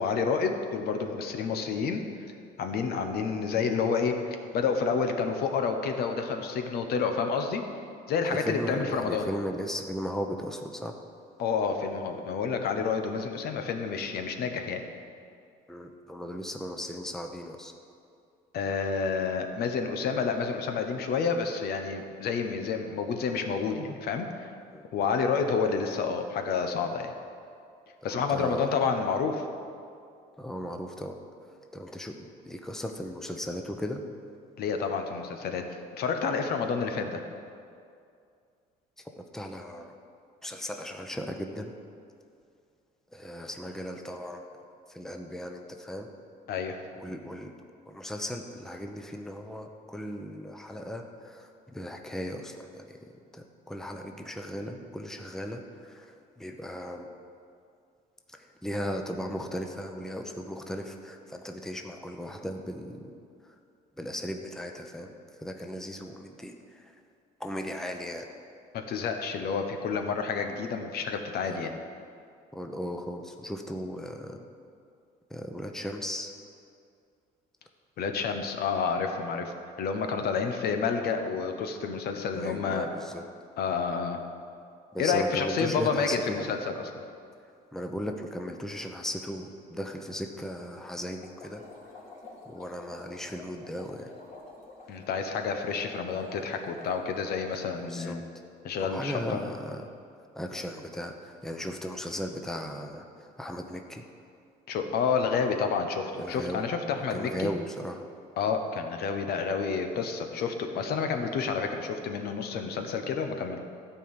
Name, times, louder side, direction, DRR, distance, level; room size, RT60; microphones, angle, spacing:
voice 1, 0.0-2.0 2.6-7.6 8.1-9.3 11.4-14.8 18.5-24.5 24.9-27.1 28.0-29.5 34.6-35.6 36.0-37.2 46.5-46.8 68.7-71.7 78.0-82.9 83.6-84.2 85.0-86.9 94.9-98.2 98.6-99.5 104.7-107.5 108.4-113.6, left 5 dB, 70° left, 5 dB, 1.1 m, -29 dB
voice 2, 8.3-11.0 15.7-17.7 24.7-24.8 28.0-28.8 30.4-34.0 39.0-39.9 40.4-41.7 43.1-44.5 44.9-46.1 47.0-47.5 47.9-57.1 58.3-63.1 63.4-63.6 64.0-67.0 67.4-68.3 71.5-71.7 72.5-74.4 75.3-76.3 82.4-83.3 84.9-86.5 87.7-91.6 92.5-94.1 97.8-98.2 98.8-99.9 100.3-104.1 106.2-106.7 107.1-108.1, equal, 5° left, 4 dB, 0.8 m, -37 dB
sound 1, 91.2-97.7, left 3 dB, 45° left, 2.8 m, -49 dB
13.0 x 4.7 x 8.7 m, 2.4 s
cardioid pair, 110°, 17 cm